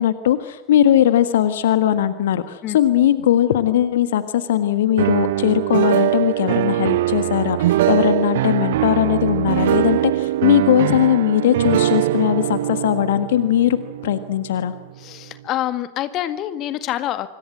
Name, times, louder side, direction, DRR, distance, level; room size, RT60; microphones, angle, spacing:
voice 1, 0.0-13.8 14.0-14.7, left 11 dB, 60° left, 12 dB, 1.6 m, -19 dB
sound 1, 5.0-14.9, right 14 dB, 55° right, 0.8 m, -22 dB
voice 2, 15.0-17.3, left 13 dB, 35° left, 12 dB, 1.9 m, -26 dB
26.0 x 25.5 x 7.7 m, 0.99 s
figure-of-eight pair, 90°, 0 cm